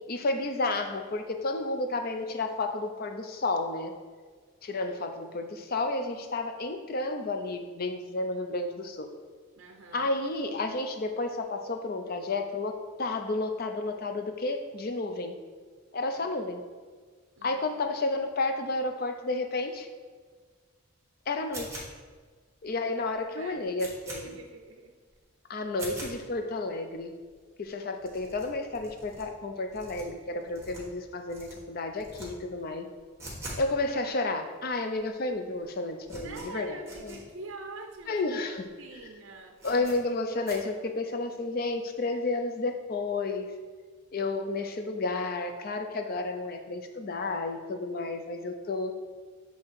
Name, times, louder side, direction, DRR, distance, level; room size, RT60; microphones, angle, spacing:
voice 1, 0.1-3.9 4.6-9.1 9.9-15.4 15.9-16.6 17.4-19.9 21.3-21.9 22.6-24.4 25.5-27.1 27.6-32.9 33.6-36.8 37.0-37.2 38.1-38.6 39.6-43.5 44.1-48.9, left 2 dB, 45° left, 6 dB, 0.5 m, -31 dB
voice 2, 9.6-10.1 16.2-16.4 17.4-17.6 23.2-23.7 24.2-24.9 33.4-33.6 36.2-39.6, right 3 dB, 60° right, 3 dB, 0.5 m, -45 dB
sound 1, 21.5-22.2 22.7-22.8 23.1-23.2 23.5-24.2 24.7-24.8 25.1-25.2 25.7-26.1 26.7-26.8 26.9-27.0 27.2-27.3 27.6-27.7 28.0-29.2 29.7-31.0 31.3-31.5 31.9-32.3 32.5-33.7 33.9-34.0 34.7-34.8 34.9-35.3 35.6-37.2 37.6-37.7 37.9-38.0 38.5-38.7 38.9-39.0 39.6-40.0 40.4-40.6, right 1 dB, 15° right, 1.4 m, -43 dB
7.5 x 2.8 x 4.6 m, 1.5 s
head